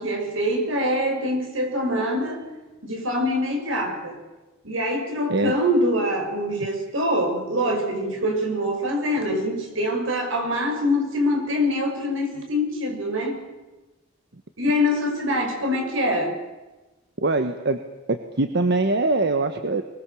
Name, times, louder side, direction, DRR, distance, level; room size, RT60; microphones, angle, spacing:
voice 1, 0.0-2.5 2.8-4.2 4.6-13.4 14.6-16.4, equal, 80° right, 3 dB, 6.1 m, -24 dB
voice 2, 17.2-17.8 18.1-19.8, right 2 dB, 60° right, 8 dB, 1.2 m, -22 dB
24.0 x 20.5 x 7.1 m, 1.1 s
head